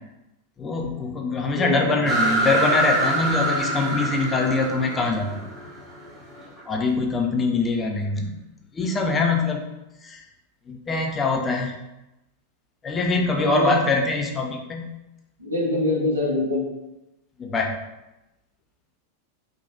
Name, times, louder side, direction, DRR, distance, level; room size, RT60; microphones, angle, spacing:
voice 1, 0.6-5.4 6.7-8.4 8.7-9.6 10.0-10.2 10.7-11.8 12.8-14.9 17.4-17.8, left 3 dB, 20° left, 1 dB, 0.4 m, -23 dB
voice 2, 1.5-2.3 13.4-13.8 15.4-16.7, left 2 dB, 75° right, -3 dB, 0.7 m, -25 dB
sound 1, 2.0-6.6, right 2 dB, 10° right, 0.8 m, -25 dB
3.1 x 2.2 x 2.7 m, 0.96 s
figure-of-eight pair, 90°, 0 cm